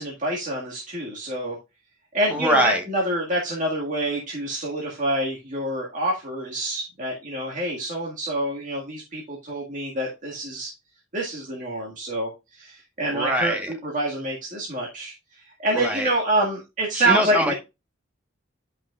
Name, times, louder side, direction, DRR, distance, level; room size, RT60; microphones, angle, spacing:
voice 1, 0.0-1.6 2.1-10.7 11.1-12.3 12.6-15.1 15.6-17.5, right 1 dB, 45° right, 1.9 m, -27 dB
voice 2, 2.3-2.8 13.1-13.7 15.7-16.1 16.9-17.5, equal, 10° right, 1.3 m, -23 dB
11.0 x 5.5 x 2.4 m
head